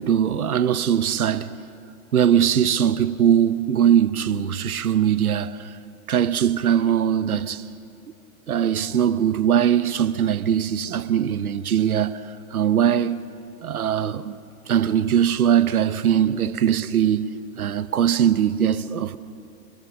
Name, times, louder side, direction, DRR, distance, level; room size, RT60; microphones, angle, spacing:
voice 1, 0.0-1.6 2.1-5.7 6.1-7.6 8.5-12.2 12.5-13.2 13.6-14.4 14.7-17.3 17.6-19.2, right 9 dB, 80° right, 1.0 m, -21 dB
26.5 x 22.0 x 6.4 m
hypercardioid pair, 120°, 43 cm